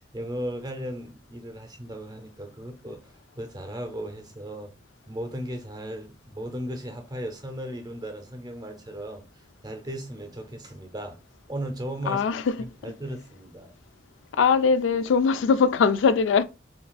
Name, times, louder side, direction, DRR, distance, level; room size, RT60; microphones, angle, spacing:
voice 1, 0.1-3.1 3.4-4.7 5.1-9.2 9.6-11.2 11.5-12.2 12.6-13.7, right 1 dB, 20° right, 0.6 m, -36 dB
voice 2, 12.0-12.6 14.3-16.4, left 5 dB, 80° left, 0.3 m, -21 dB
5.8 x 2.4 x 2.3 m
head